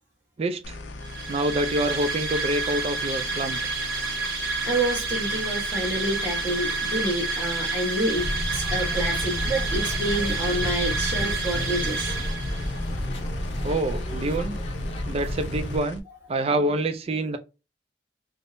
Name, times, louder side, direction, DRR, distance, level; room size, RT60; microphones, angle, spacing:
voice 1, 0.4-0.8 1.3-3.6 13.6-14.6 15.1-16.0 16.3-17.4, right 1 dB, 35° right, 0.3 m, -26 dB
sound 1, 0.6-16.0, left 2 dB, 90° left, 0.5 m, -39 dB
sound 2, 1.0-12.8, right 4 dB, 65° right, 0.8 m, -29 dB
voice 2, 4.6-12.1, right 1 dB, 10° right, 1.0 m, -28 dB
sound 3, 8.1-15.8, equal, 35° left, 0.6 m, -31 dB
3.4 x 2.0 x 2.5 m
head